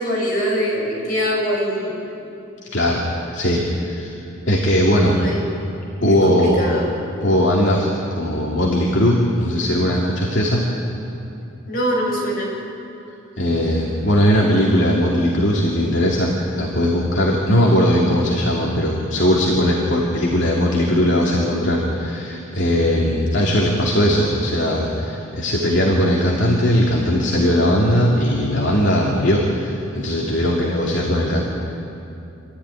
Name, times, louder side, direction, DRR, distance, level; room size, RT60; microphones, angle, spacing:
voice 1, 0.0-2.0 5.2-5.4 6.2-6.8 11.7-12.5, equal, 50° left, -4 dB, 7.6 m, -23 dB
voice 2, 2.7-3.0 3.3-4.1 4.5-5.2 6.0-6.6 7.2-10.7 13.4-31.4, equal, 65° left, -3 dB, 2.8 m, -19 dB
27.0 x 14.0 x 10.0 m, 2.7 s
head